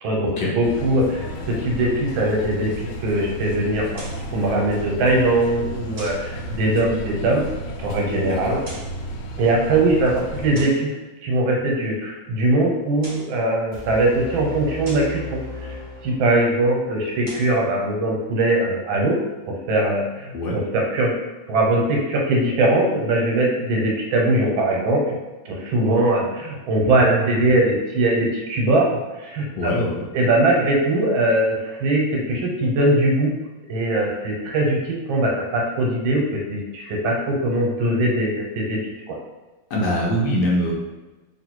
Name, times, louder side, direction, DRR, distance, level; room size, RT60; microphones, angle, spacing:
voice 1, 0.0-4.0 4.3-7.5 7.8-8.6 9.4-10.9 11.2-15.7 16.0-19.2 19.5-21.1 21.5-25.2 25.4-28.9 29.2-29.7 30.1-33.4 33.7-38.8 39.1-39.2, right 1 dB, 85° right, -1 dB, 1.7 m, -21 dB
sound 1, 0.6-10.6, right 1 dB, 85° left, 1.4 m, -33 dB
sound 2, 3.9-4.3 6.0-6.3 8.5-9.0 10.5-10.9 12.8-13.4 14.8-15.2 17.1-17.6, right 1 dB, 40° right, 1.0 m, -39 dB
voice 2, 8.3-8.6 20.3-20.6 26.8-27.3 29.6-30.1 39.7-40.7, equal, 70° left, -3 dB, 1.2 m, -23 dB
sound 3, 13.7-16.7, left 3 dB, 60° right, 0.4 m, -36 dB
3.0 x 3.0 x 4.5 m, 1.2 s
omnidirectional pair, 2.1 m